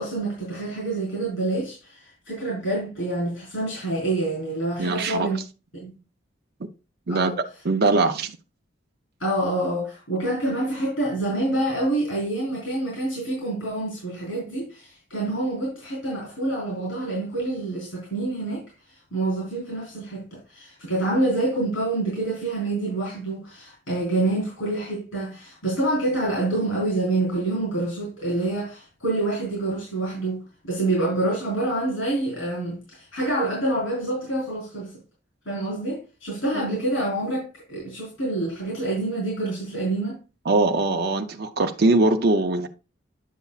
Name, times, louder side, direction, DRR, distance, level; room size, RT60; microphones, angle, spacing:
voice 1, 0.0-5.4 5.7-5.9 7.1-7.4 9.2-18.6 19.1-34.9 35.5-40.2, right 2 dB, 85° left, 4.3 m, -27 dB
voice 2, 4.8-5.3 7.1-7.3 7.6-8.4 36.5-36.8 40.5-42.7, right 2 dB, 50° right, 0.6 m, -21 dB
9.2 x 6.8 x 2.4 m
head